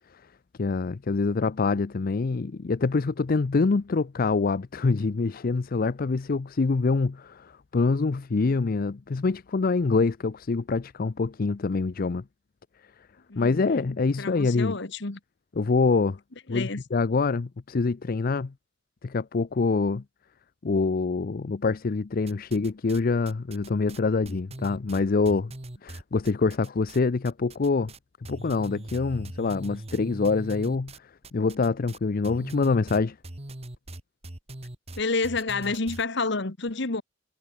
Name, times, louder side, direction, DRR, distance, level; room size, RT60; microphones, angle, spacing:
voice 1, 0.6-12.2 13.4-14.7 15.6-16.2 16.5-18.5 19.0-20.0 20.6-25.5 25.8-27.9 28.3-33.2, left 4 dB, 50° left, 0.5 m, -25 dB
voice 2, 13.3-15.2 16.5-16.8 35.0-37.0, left 3 dB, 65° left, 1.6 m, -29 dB
sound 1, 22.3-23.0 23.3-27.0 27.2-28.0 28.2-36.1, right 1 dB, 35° right, 1.6 m, -41 dB
head